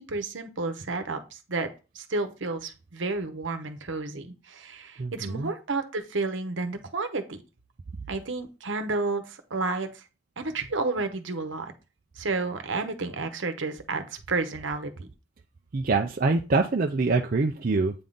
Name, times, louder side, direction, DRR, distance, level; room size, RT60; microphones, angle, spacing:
voice 1, 0.0-7.4 8.1-10.0 10.4-11.7 12.2-15.1, right 3 dB, 70° right, 7 dB, 1.0 m, -31 dB
voice 2, 5.0-5.5 15.7-17.9, right 3 dB, 45° right, 3 dB, 0.5 m, -25 dB
8.6 x 3.7 x 3.9 m, 0.31 s
head